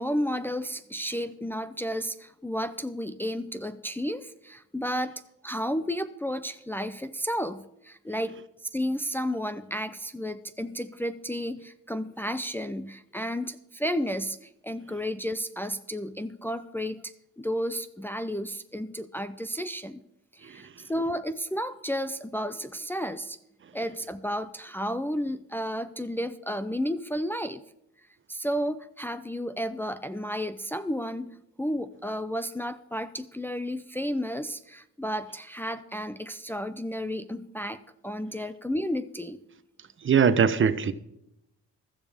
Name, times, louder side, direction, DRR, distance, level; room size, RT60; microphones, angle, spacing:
voice 1, 0.0-5.1 5.4-8.4 8.7-20.0 20.3-23.4 23.7-27.6 28.3-39.4, equal, 5° left, 0.6 m, -32 dB
voice 2, 40.0-40.9, right 7 dB, 40° right, 0.9 m, -21 dB
15.5 x 12.5 x 3.6 m
cardioid pair, 90°, 30 cm